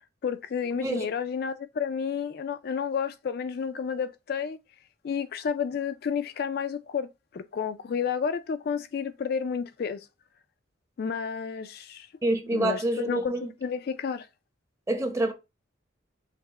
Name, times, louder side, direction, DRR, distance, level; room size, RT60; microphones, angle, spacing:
voice 1, 0.2-4.6 5.0-10.0 11.0-12.1 12.5-13.3 13.6-14.3, left 6 dB, 55° left, 0.3 m, -31 dB
voice 2, 12.2-13.5 14.9-15.3, right 1 dB, 15° right, 0.7 m, -27 dB
5.7 x 2.0 x 4.0 m
head